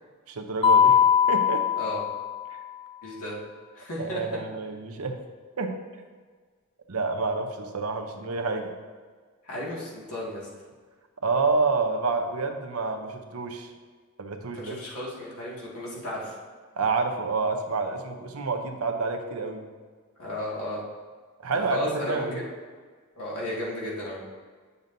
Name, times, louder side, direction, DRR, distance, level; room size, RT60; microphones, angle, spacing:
voice 1, 0.3-1.0 1.3-1.7 2.5-2.6 4.0-5.2 5.6-5.8 6.9-8.7 11.2-13.7 14.2-14.8 16.8-19.7 21.4-22.4, right 3 dB, 75° right, 5 dB, 0.8 m, -28 dB
Mallet percussion, 0.6-2.7, left 8 dB, 25° left, 0.3 m, -21 dB
voice 2, 3.0-3.4 3.7-4.2 9.4-10.5 14.5-16.4 20.2-20.8 21.7-22.4 23.1-24.2, left 1 dB, 80° left, -5 dB, 2.1 m, -34 dB
8.9 x 6.8 x 2.7 m, 1.5 s
head